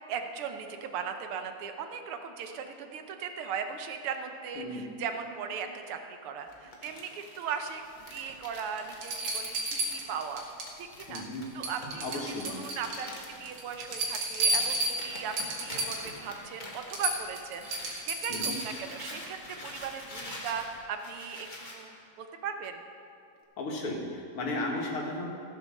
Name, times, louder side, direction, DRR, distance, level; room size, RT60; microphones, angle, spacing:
voice 1, 0.1-7.8 8.1-10.4 10.8-11.2 11.5-22.8, right 6 dB, 90° right, 6 dB, 1.8 m, -38 dB
Crumpling crinkling, 6.5-18.1 18.4-21.8, left 1 dB, 25° left, 1.6 m, -46 dB
sound 1, 8.3-8.4 9.0-10.7 11.0-11.4 11.6-13.1 13.5-16.2 16.5-16.6 16.9-18.8 20.5-20.6, right 2 dB, 75° right, 2.2 m, -32 dB
voice 2, 11.1-11.4 12.0-12.5 18.3-18.6 23.6-25.3, left 2 dB, 80° left, -1 dB, 2.5 m, -34 dB
15.5 x 6.8 x 6.5 m, 2.5 s
omnidirectional pair, 2.4 m